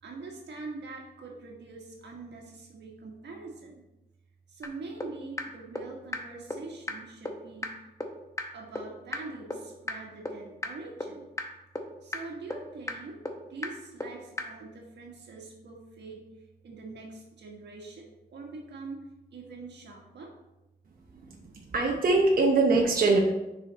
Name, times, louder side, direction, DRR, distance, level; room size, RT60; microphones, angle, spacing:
voice 1, 0.0-3.8 4.5-7.7 8.5-11.3 12.0-13.2 13.5-16.2 16.6-19.0 19.3-20.3 21.3-21.8, right 3 dB, 90° right, 0 dB, 1.5 m, -44 dB
sound 1, 4.6-4.7 5.0-5.1 5.4-5.5 5.8-5.9 6.1-6.2 6.5-6.6 6.9-7.0 7.3-7.4 7.6-7.7 8.0-8.1 8.4-8.5 8.8-8.9 9.1-9.2 9.5-9.6 9.9-10.0 10.3-10.4 10.6-10.7 11.0-11.1 11.4-11.5 11.8-11.9 12.1-12.2 12.5-12.6 12.9-13.0 13.3-13.4 13.6-13.7 14.0-14.1 14.4-14.5, left 2 dB, 15° left, 0.8 m, -32 dB
voice 2, 21.7-23.2, right 3 dB, 55° right, 0 dB, 0.9 m, -22 dB
6.5 x 4.9 x 4.1 m, 0.96 s
wide cardioid pair, 115°, 17 cm